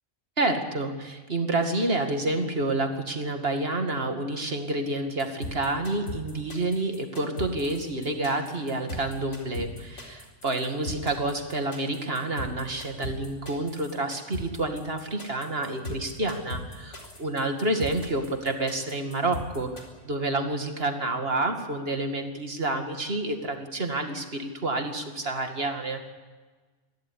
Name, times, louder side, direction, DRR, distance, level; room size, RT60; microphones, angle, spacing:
voice 1, 0.4-26.1, right 2 dB, 50° right, 5 dB, 2.5 m, -29 dB
sound 1, 5.2-19.8, left 1 dB, 70° left, 4.5 m, -38 dB
22.5 x 16.0 x 9.9 m, 1.4 s
omnidirectional pair, 1.3 m